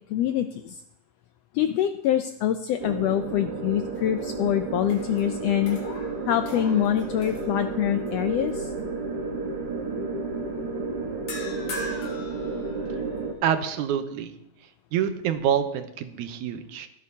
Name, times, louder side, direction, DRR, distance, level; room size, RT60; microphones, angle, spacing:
voice 1, 0.1-0.8 1.5-5.8 6.3-8.7, left 11 dB, 85° left, 8 dB, 1.4 m, -25 dB
sound 1, 2.8-13.3, right 3 dB, 60° right, 1.0 m, -32 dB
sound 2, 3.7-4.4 4.8-8.1 8.5-8.8 11.3-13.2, left 2 dB, 60° left, 2.8 m, -41 dB
voice 2, 13.4-14.3 14.9-16.9, right 9 dB, 90° right, 9 dB, 2.2 m, -26 dB
15.5 x 12.0 x 2.8 m, 0.81 s
omnidirectional pair, 3.4 m